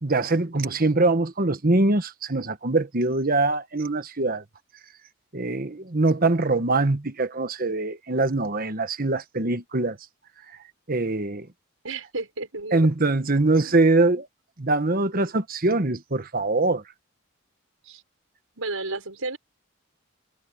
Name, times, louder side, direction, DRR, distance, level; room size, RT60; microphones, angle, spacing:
voice 1, 0.0-4.4 5.3-10.0 10.9-11.5 12.7-14.3 14.6-16.8, right 2 dB, 45° right, 1.3 m, -23 dB
voice 2, 11.8-12.9 13.6-13.8 17.8-18.0 18.6-19.4, right 3 dB, 85° right, 5.9 m, -32 dB
head